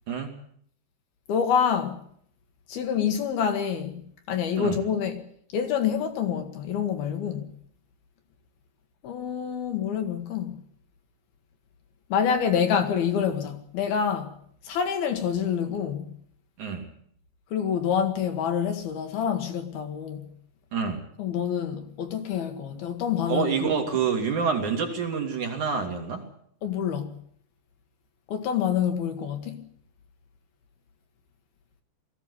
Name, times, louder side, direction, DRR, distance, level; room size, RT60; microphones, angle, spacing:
voice 1, 0.1-0.4 4.6-4.8 16.6-16.9 20.7-21.0 23.3-26.2, right 6 dB, 50° right, 3.6 m, -27 dB
voice 2, 1.3-2.0 2.7-4.0 4.3-5.2 5.5-7.5 9.0-10.6 12.1-14.3 14.6-16.1 17.5-20.3 21.2-23.7 26.6-27.1 28.3-29.6, left 7 dB, 65° left, 3.1 m, -27 dB
20.5 x 15.5 x 9.8 m
omnidirectional pair, 5.1 m